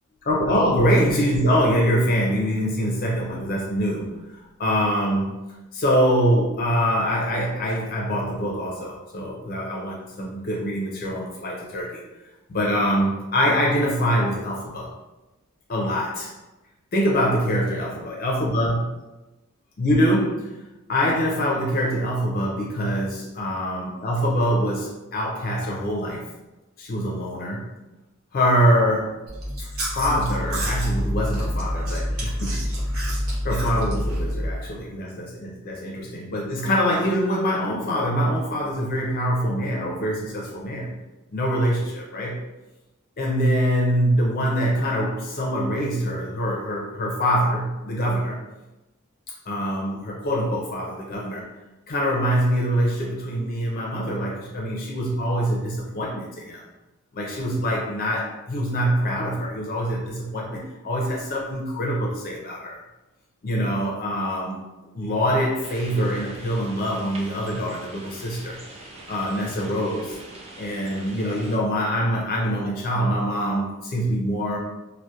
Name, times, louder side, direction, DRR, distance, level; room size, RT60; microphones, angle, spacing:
voice 1, 0.2-5.4 5.7-12.0 12.5-14.9 15.7-16.3 16.9-18.8 19.8-20.5 20.9-26.3 26.8-27.7 28.3-29.2 29.6-29.7 30.0-32.6 33.4-41.0 41.3-42.4 43.2-48.4 49.5-51.4 51.9-56.6 57.1-62.8 63.4-64.6 64.9-68.6 69.1-70.2 70.6-74.6, equal, 45° left, -2 dB, 0.4 m, -24 dB
Chewing mastication, 29.3-34.6, equal, 70° right, 0.7 m, -27 dB
sound 1, 65.6-71.6, right 1 dB, 30° right, 0.3 m, -43 dB
2.3 x 2.0 x 2.7 m, 1.0 s
head